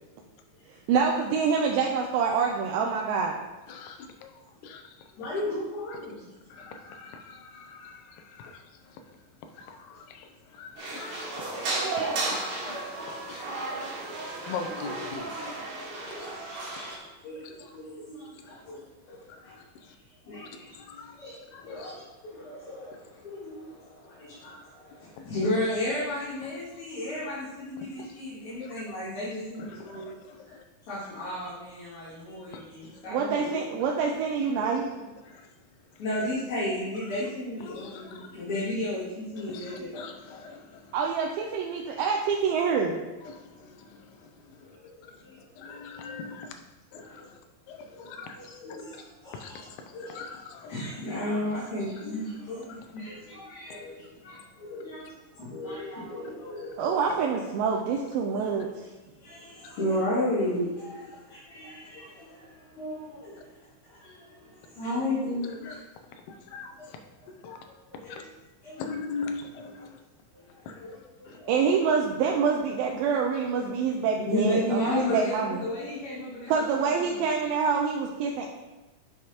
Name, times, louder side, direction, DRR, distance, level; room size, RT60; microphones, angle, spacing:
voice 1, 0.9-3.3 33.1-34.9 40.9-43.0 56.8-58.7 71.5-75.6 76.5-78.5, right 6 dB, 85° right, 0 dB, 2.4 m, -26 dB
voice 2, 3.7-5.1 5.9-6.0 6.5-9.2 9.5-11.5 11.8-12.8 13.3-13.7 14.4-16.4 16.7-16.9 17.4-17.7 18.3-18.6 19.1-20.0 20.3-21.2 21.5-21.9 25.2-25.3 27.8-28.1 28.6-28.8 29.6-30.6 32.5-32.6 32.9-33.0 35.2-35.5 37.1-37.3 37.6-38.3 39.4-41.0 43.2-44.8 45.1-45.2 45.6-46.5 46.9-47.4 47.7-48.5 49.3-50.7 54.2-54.4 59.6-59.7 61.1-61.2 65.6-65.8 66.1-67.0 67.3-67.6 68.1-68.2 68.8-70.0 70.7-71.4, left 5 dB, 80° left, 5 dB, 1.9 m, -43 dB
voice 3, 5.2-6.3 11.0-11.1 12.1-12.6 13.9-14.1 15.8-19.6 20.2-20.7 21.1-30.2 30.4-30.6 30.9-33.6 33.8-33.9 34.5-34.9 36.0-40.1 44.6-45.8 46.9-47.0 47.9-48.1 48.3-49.6 49.9-50.3 50.7-57.0 59.2-65.8 66.8-66.9 67.4-67.6 68.0-68.2 68.6-68.9 70.3-71.7 74.2-77.3, left 1 dB, 55° left, -13 dB, 3.4 m, -34 dB
sound 1, 10.8-17.0, right 3 dB, 60° right, 2.7 m, -33 dB
10.5 x 4.9 x 2.9 m, 1.1 s
omnidirectional pair, 4.3 m